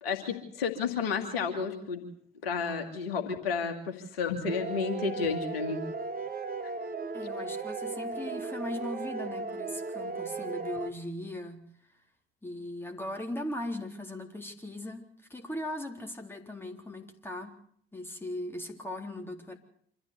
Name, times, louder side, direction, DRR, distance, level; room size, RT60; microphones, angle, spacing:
voice 1, 0.0-2.0 2.4-5.8, left 5 dB, 70° left, 2.7 m, -31 dB
sound 1, 4.5-10.9, right 4 dB, 30° right, 2.0 m, -36 dB
voice 2, 7.1-12.0 12.4-17.6 17.9-19.6, left 1 dB, 5° left, 3.9 m, -39 dB
26.0 x 14.0 x 8.2 m
figure-of-eight pair, 55°, 30 cm